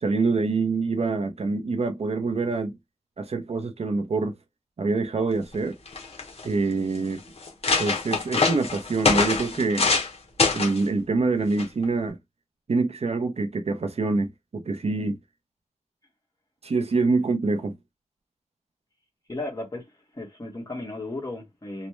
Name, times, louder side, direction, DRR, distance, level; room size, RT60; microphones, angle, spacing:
voice 1, 0.0-2.8 3.2-4.3 4.8-5.8 6.4-7.2 7.8-9.9 10.5-12.2 12.7-15.2 16.6-17.7, right 3 dB, 55° right, 0.6 m, -25 dB
sound 1, 5.5-5.6 5.9-6.4 7.0-7.1 7.4-10.1 10.4-10.8 11.6-11.8, left 4 dB, 50° left, 0.9 m, -24 dB
voice 2, 19.3-19.8 20.1-21.9, left 2 dB, 25° left, 1.3 m, -34 dB
3.1 x 2.2 x 3.0 m
wide cardioid pair, 110°, 13 cm